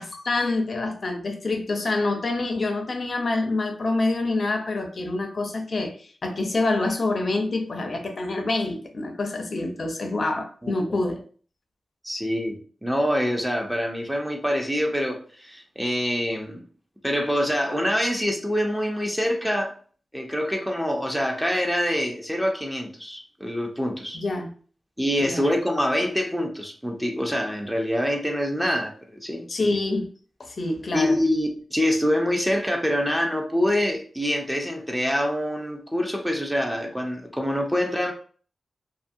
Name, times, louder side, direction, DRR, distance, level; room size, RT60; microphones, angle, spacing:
voice 1, 0.0-11.2 24.1-24.5 25.2-25.5 29.5-30.1 30.4-31.2, left 2 dB, 50° left, 0.5 m, -26 dB
voice 2, 10.6-11.0 12.0-16.6 17.0-19.7 20.1-24.2 25.0-29.7 30.9-38.1, equal, 5° right, 0.4 m, -25 dB
2.6 x 2.4 x 2.6 m
wide cardioid pair, 115°, 0 cm